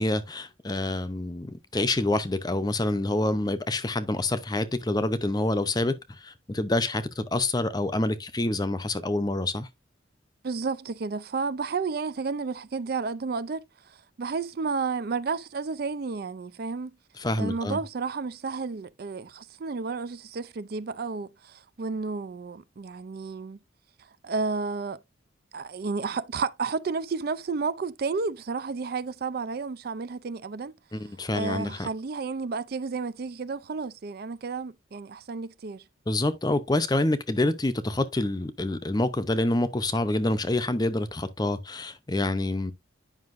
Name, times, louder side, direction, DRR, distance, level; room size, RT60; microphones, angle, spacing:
voice 1, 0.0-9.7 17.2-17.8 30.9-31.9 36.1-42.7, left 2 dB, 20° left, 0.6 m, -27 dB
voice 2, 10.4-16.9 17.4-23.6 24.2-25.0 25.5-30.7 31.3-35.8, right 4 dB, 50° right, 0.4 m, -32 dB
9.6 x 5.6 x 2.5 m
head